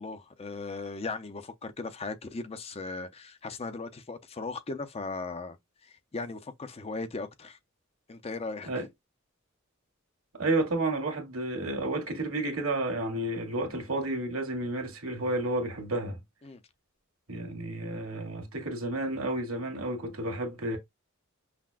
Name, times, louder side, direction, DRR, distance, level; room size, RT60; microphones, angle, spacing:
voice 1, 0.0-5.6 5.8-7.6 8.1-8.9 16.4-16.6, left 3 dB, 30° left, 0.5 m, -38 dB
voice 2, 10.4-16.2 17.3-20.8, right 2 dB, 75° right, 1.5 m, -31 dB
5.7 x 2.1 x 2.4 m
head